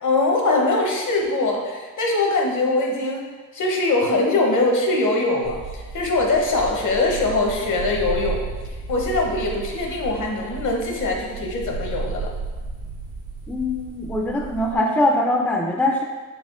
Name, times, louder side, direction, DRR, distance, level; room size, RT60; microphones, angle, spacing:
voice 1, 0.0-3.3 3.5-8.4 8.9-12.3, left 2 dB, 60° left, 0 dB, 0.8 m, -22 dB
sound 1, 5.4-14.8, right 4 dB, 85° right, 0.9 m, -33 dB
voice 2, 13.5-16.0, left 1 dB, 5° left, 1 dB, 0.3 m, -22 dB
4.2 x 3.4 x 2.4 m, 1.3 s
cardioid pair, 70°, 35 cm